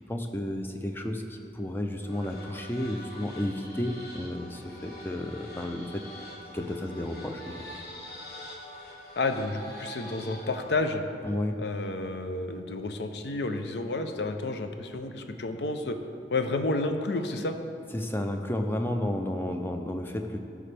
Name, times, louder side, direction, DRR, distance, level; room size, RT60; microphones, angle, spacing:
voice 1, 0.1-6.1 6.5-7.6 11.2-11.6 17.9-20.5, left 1 dB, 10° left, 5 dB, 0.4 m, -32 dB
sound 1, 2.0-10.7, left 1 dB, 55° left, 1.4 m, -45 dB
voice 2, 9.2-11.0 11.6-16.0 16.3-17.6, left 2 dB, 75° left, 7 dB, 0.6 m, -30 dB
14.0 x 5.0 x 3.4 m, 2.6 s
head